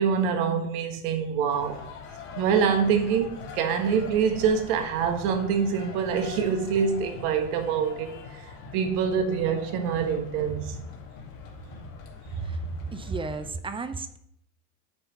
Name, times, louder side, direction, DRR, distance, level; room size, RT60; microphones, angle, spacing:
voice 1, 0.0-1.8 2.4-10.8 12.3-12.4, right 6 dB, 70° right, 1.6 m, -25 dB
sound 1, 1.5-13.5, left 5 dB, 70° left, 2.4 m, -42 dB
voice 2, 12.9-14.2, right 4 dB, 10° right, 0.4 m, -34 dB
10.0 x 3.4 x 7.1 m
supercardioid pair, 110°, 47 cm